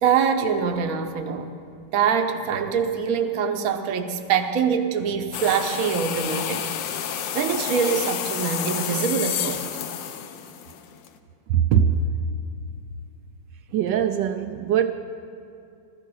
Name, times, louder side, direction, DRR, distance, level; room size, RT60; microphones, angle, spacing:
voice 1, 0.0-1.5 1.9-6.6 7.3-9.7, right 6 dB, 60° right, 7 dB, 1.3 m, -24 dB
sound 1, 5.3-11.1, left 9 dB, 85° left, 1.5 m, -30 dB
voice 2, 11.5-12.0 13.7-14.9, right 9 dB, 80° right, 7 dB, 1.2 m, -21 dB
15.5 x 14.5 x 5.5 m, 2.5 s
omnidirectional pair, 1.9 m